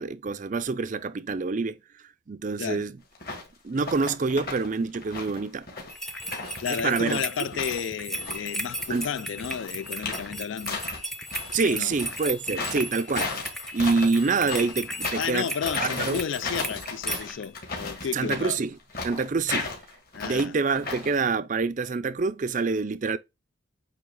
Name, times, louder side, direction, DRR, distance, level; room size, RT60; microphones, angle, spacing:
voice 1, 0.0-1.8 2.3-3.0 3.6-5.7 6.7-7.2 8.9-9.1 11.5-13.3 13.7-15.5 15.8-16.2 18.1-18.7 19.0-19.7 20.2-23.2, right 4 dB, 40° right, 0.4 m, -26 dB
sound 1, 3.2-3.5 3.8-4.7 4.9-7.8 8.1-11.5 11.9-21.2, left 3 dB, 45° left, 2.2 m, -35 dB
sound 2, 5.9-17.5, equal, ahead, 0.7 m, -35 dB
voice 2, 6.6-10.8 11.6-11.9 15.2-18.6 20.1-20.5, left 7 dB, 65° left, 0.4 m, -32 dB
8.6 x 3.3 x 3.7 m
head